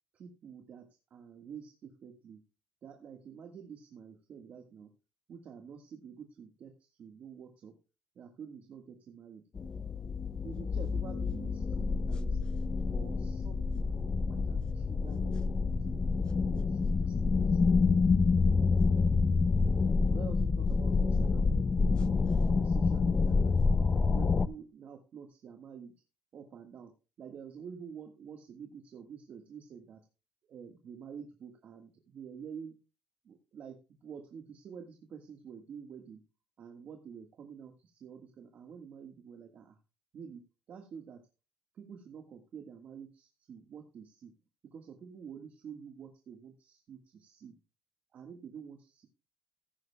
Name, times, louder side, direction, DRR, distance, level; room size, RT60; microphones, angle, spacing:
voice 1, 0.1-2.4 2.8-4.9 5.3-7.8 8.1-9.4 10.4-12.4 12.9-13.9 14.3-15.4 15.8-17.6 20.1-22.2 22.6-23.7 24.1-26.0 26.3-30.0 30.5-32.7 33.2-36.2 36.6-39.8 40.1-40.4 40.7-41.2 41.7-44.3 44.6-47.6 48.1-49.1, right 7 dB, 50° right, 4 dB, 1.6 m, -48 dB
sound 1, 9.6-24.5, left 4 dB, 30° left, 0.5 m, -28 dB
14.5 x 10.5 x 2.2 m, 0.32 s
cardioid pair, 110°, 3 cm